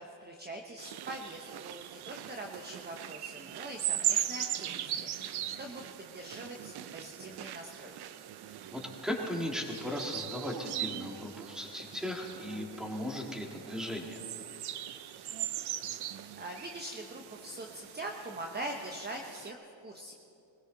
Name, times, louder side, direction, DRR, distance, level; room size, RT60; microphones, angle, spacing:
voice 1, 0.0-8.0 16.4-20.1, right 1 dB, 20° right, 3 dB, 1.0 m, -43 dB
sound 1, 0.8-19.5, right 12 dB, 60° right, 0.7 m, -39 dB
voice 2, 8.7-14.2, left 1 dB, ahead, 0 dB, 2.2 m, -37 dB
21.0 x 16.0 x 4.0 m, 2.8 s
cardioid pair, 105°, 45 cm